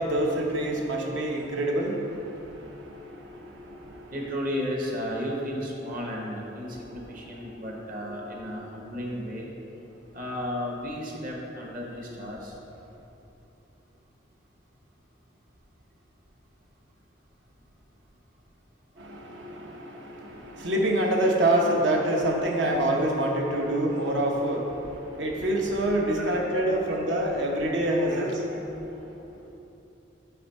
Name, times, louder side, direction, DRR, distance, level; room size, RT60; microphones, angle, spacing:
voice 1, 0.0-4.2 6.6-9.0 19.0-29.3, right 1 dB, 65° right, 0 dB, 0.9 m, -27 dB
voice 2, 4.1-9.5 10.1-12.5 26.2-27.0 28.1-28.7, equal, 45° right, -1 dB, 1.1 m, -34 dB
10.0 x 3.5 x 4.3 m, 2.9 s
head